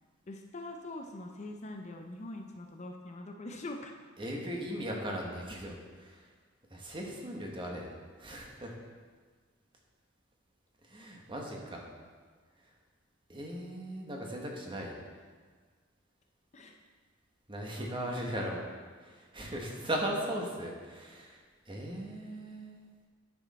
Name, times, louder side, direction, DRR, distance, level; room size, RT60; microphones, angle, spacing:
voice 1, 0.3-3.9 16.5-16.8, left 2 dB, 35° left, 3 dB, 0.6 m, -43 dB
voice 2, 4.2-6.3 6.7-7.9 8.2-8.8 10.8-11.8 13.3-15.0 17.5-18.6 19.0-22.8, right 1 dB, 25° right, 0 dB, 1.3 m, -38 dB
10.0 x 6.3 x 4.2 m, 1.6 s
head